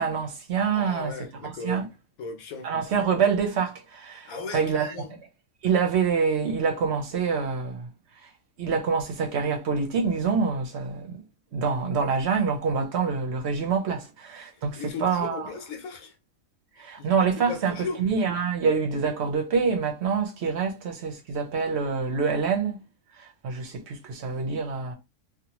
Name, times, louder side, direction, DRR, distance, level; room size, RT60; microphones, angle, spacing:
voice 1, 0.0-1.1 1.6-1.9 2.6-4.9 5.6-7.9 8.6-11.2 11.5-15.5 16.8-22.8 23.2-24.9, right 5 dB, 55° right, 0.9 m, -26 dB
voice 2, 0.7-1.8 2.2-2.7 4.2-5.1 14.5-16.2 16.8-18.0, left 4 dB, 75° left, 1.1 m, -37 dB
2.8 x 2.4 x 2.9 m
omnidirectional pair, 1.5 m